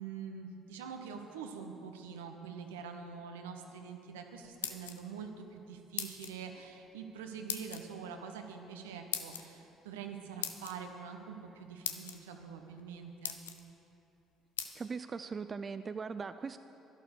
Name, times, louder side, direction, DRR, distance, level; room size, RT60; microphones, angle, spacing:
voice 1, 0.0-13.4, right 6 dB, 80° right, 5 dB, 1.0 m, -45 dB
sound 1, 4.4-5.2 6.0-6.4 7.5-7.8 9.1-9.4 10.4-10.7 11.5-11.6 11.8-12.2 12.8-12.9 13.2-13.6 14.6-14.7, left 9 dB, 85° left, 0.6 m, -38 dB
voice 2, 14.7-16.6, right 5 dB, 35° right, 10 dB, 0.4 m, -39 dB
11.5 x 11.5 x 6.5 m, 2.8 s
hypercardioid pair, 55°, 0 cm